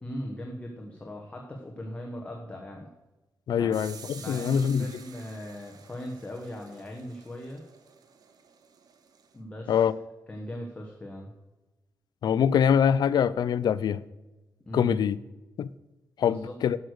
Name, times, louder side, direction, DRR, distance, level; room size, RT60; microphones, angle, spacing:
voice 1, 0.0-2.9 3.6-3.8 4.1-7.6 9.3-9.8 10.3-11.3 14.7-15.0 16.2-16.6, equal, 20° left, 1.1 m, -39 dB
voice 2, 3.5-4.9 9.7-9.9 12.2-14.0 14.7-15.2 15.6-15.7 16.2-16.8, left 8 dB, 70° left, 0.4 m, -24 dB
sound 1, 3.7-9.4, right 6 dB, 65° right, 1.0 m, -50 dB
11.0 x 6.4 x 6.4 m
wide cardioid pair, 160°, 7 cm